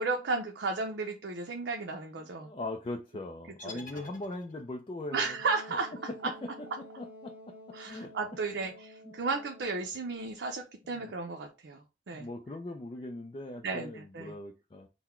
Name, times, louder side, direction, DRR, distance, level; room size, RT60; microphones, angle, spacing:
voice 1, 0.0-2.5 3.9-4.0 5.1-5.9 6.2-6.3 7.7-12.3 13.6-14.3, right 3 dB, 75° right, 0.6 m, -34 dB
voice 2, 2.4-5.4 6.1-6.5 7.0-7.5 7.8-8.1 9.0-9.1 11.0-11.1 12.1-14.9, left 2 dB, 30° left, 0.4 m, -40 dB
sound 1, 3.6-4.9, left 2 dB, 50° left, 0.8 m, -48 dB
Wind instrument woodwind instrument, 5.2-10.1, left 1 dB, 10° right, 0.9 m, -51 dB
3.9 x 2.1 x 4.3 m
head